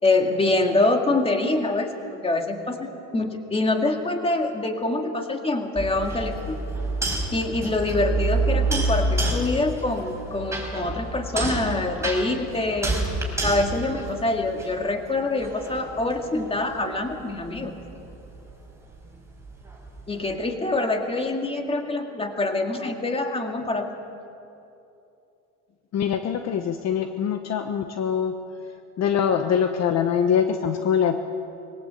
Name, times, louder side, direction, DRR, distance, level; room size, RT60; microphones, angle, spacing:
voice 1, 0.0-6.6 7.3-13.0 13.4-17.8 20.1-23.9, left 2 dB, 15° left, 4 dB, 2.3 m, -25 dB
sound 1, 5.8-14.9 15.4-20.3, right 2 dB, 5° right, 5.7 m, -29 dB
voice 2, 25.9-28.3 29.0-31.2, left 8 dB, 45° left, 7 dB, 1.2 m, -23 dB
22.0 x 17.5 x 8.4 m, 2.8 s
supercardioid pair, 110°, 38 cm